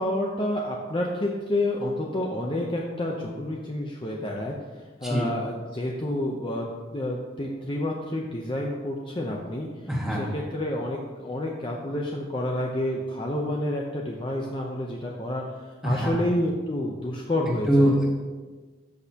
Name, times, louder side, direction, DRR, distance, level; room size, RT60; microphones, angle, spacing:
voice 1, 0.0-4.5 5.0-6.6 6.9-9.7 10.2-15.4 15.8-17.9, left 1 dB, 25° left, -1 dB, 0.7 m, -29 dB
voice 2, 9.9-10.2 15.8-16.3 17.7-18.1, equal, 5° right, -4 dB, 1.9 m, -23 dB
13.5 x 6.3 x 2.9 m, 1.3 s
head